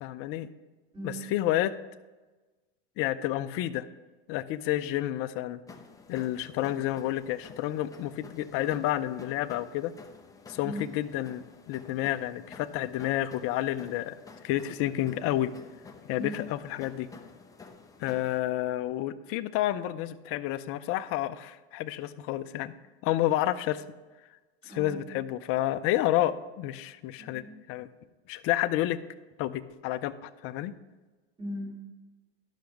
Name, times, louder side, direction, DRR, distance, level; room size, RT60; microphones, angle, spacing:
voice 1, 0.0-0.5 1.0-1.7 3.0-3.9 4.3-5.6 6.1-9.9 10.5-14.2 14.4-15.5 16.0-17.1 18.0-22.7 23.0-23.8 24.7-27.4 27.7-27.9 28.3-29.0 29.4-30.7, left 14 dB, 40° left, 11 dB, 0.6 m, -30 dB
voice 2, 0.9-1.3 10.6-10.8 16.2-16.3 24.6-25.0 27.2-27.5 31.4-31.7, right 1 dB, 15° right, -4 dB, 2.9 m, -38 dB
sound 1, 5.7-18.4, left 4 dB, 10° left, 0.7 m, -51 dB
11.5 x 5.8 x 5.2 m, 1.2 s
supercardioid pair, 125°, 34 cm